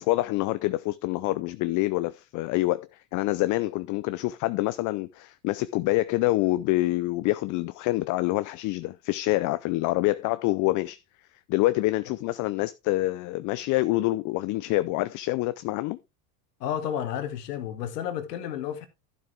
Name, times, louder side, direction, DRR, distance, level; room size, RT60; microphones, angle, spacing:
voice 1, 0.0-11.0 11.5-16.0, left 18 dB, 40° left, 0.5 m, -26 dB
voice 2, 16.6-18.9, left 9 dB, 80° left, 2.1 m, -31 dB
12.0 x 7.1 x 3.4 m
hypercardioid pair, 100°, 47 cm